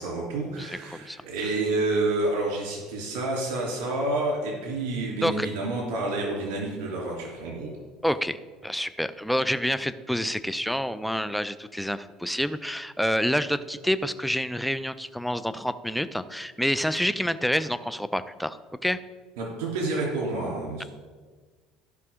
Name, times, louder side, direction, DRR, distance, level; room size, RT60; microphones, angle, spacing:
voice 1, 0.0-7.7 19.4-20.8, right 2 dB, 90° right, -2 dB, 2.9 m, -29 dB
voice 2, 0.6-1.2 5.2-5.5 8.0-19.0, equal, ahead, 12 dB, 0.4 m, -28 dB
14.0 x 6.0 x 3.6 m, 1.4 s
cardioid pair, 120°, 0 cm